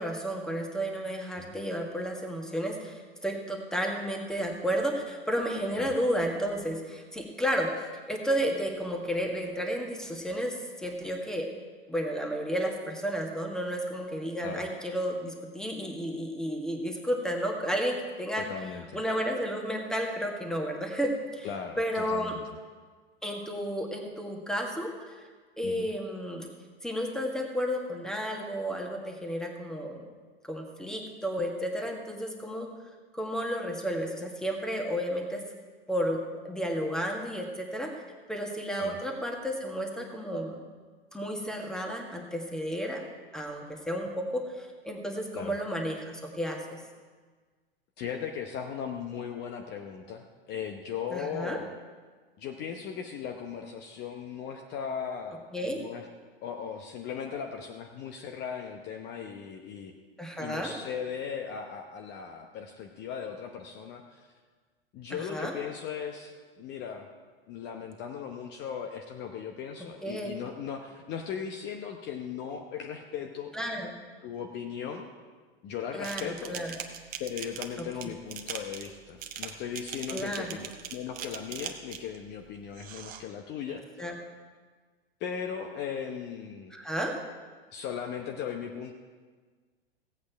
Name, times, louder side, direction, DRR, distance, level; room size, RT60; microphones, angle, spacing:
voice 1, 0.0-11.5 11.9-18.5 18.9-21.5 21.8-22.4 23.2-25.3 25.6-26.5 26.8-30.0 30.4-32.7 33.1-35.4 35.9-37.9 38.3-40.6 41.1-43.0 43.3-46.8 51.1-51.6 55.5-55.8 60.2-60.7 65.1-65.5 70.0-70.3 73.5-73.9 75.9-76.7 77.8-77.9 80.1-80.5 84.0-84.1 86.7-87.2, equal, ahead, 2 dB, 1.7 m, -32 dB
voice 2, 18.3-19.0 21.4-22.4 25.6-25.9 38.8-39.0 45.3-45.6 48.0-51.7 52.4-56.0 56.4-59.9 60.4-64.3 64.9-67.1 67.5-73.5 74.2-75.1 75.6-76.6 77.2-84.0 85.2-86.7 87.7-88.9, left 7 dB, 35° left, 3 dB, 0.9 m, -38 dB
sound 1, 76.0-82.2 82.7-83.2, right 9 dB, 30° right, 1.1 m, -40 dB
16.5 x 8.4 x 4.6 m, 1.5 s
figure-of-eight pair, 95°, 30 cm